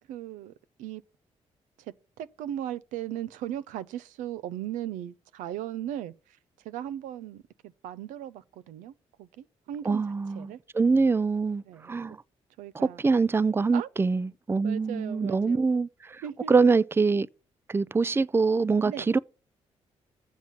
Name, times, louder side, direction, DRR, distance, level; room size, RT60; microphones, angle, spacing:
voice 1, 0.1-0.5 0.8-1.0 1.8-8.9 9.2-10.0 10.3-10.6 11.7-11.9 12.6-13.0 13.7-13.9 14.6-15.6 16.2-16.5 18.8-19.1, right 11 dB, 90° right, 0.5 m, -37 dB
voice 2, 9.9-12.2 13.0-16.2 16.5-17.3 17.7-19.2, right 4 dB, 20° right, 0.4 m, -24 dB
7.5 x 7.1 x 5.8 m
supercardioid pair, 60°, 13 cm